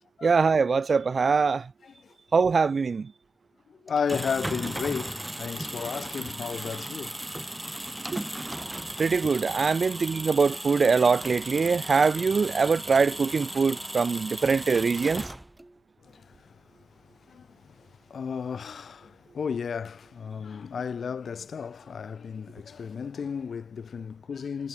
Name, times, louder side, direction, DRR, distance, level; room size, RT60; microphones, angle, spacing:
voice 1, 0.2-1.7 2.3-3.1 8.1-8.2 9.0-15.2, right 5 dB, 55° right, 0.4 m, -23 dB
voice 2, 1.8-2.1 3.7-7.2 8.9-9.3 16.0-24.7, left 6 dB, 75° left, 7.7 m, -34 dB
sound 1, 3.9-15.7, right 1 dB, 10° right, 7.9 m, -36 dB
cardioid pair, 75°, 0 cm